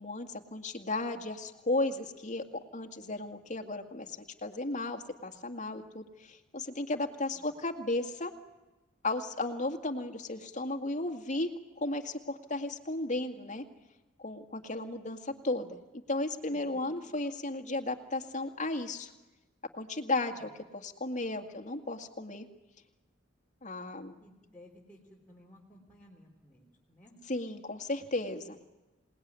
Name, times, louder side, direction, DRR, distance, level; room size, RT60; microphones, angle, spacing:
voice 1, 0.0-2.4 2.7-8.3 9.0-13.6 14.2-15.8 16.1-19.1 19.7-22.5 23.6-24.2 27.3-28.6, left 2 dB, 40° left, 4 dB, 2.0 m, -34 dB
voice 2, 16.5-16.9 20.3-20.5 24.2-27.2, left 1 dB, 10° left, -5 dB, 3.6 m, -57 dB
27.5 x 19.5 x 9.6 m, 1.1 s
head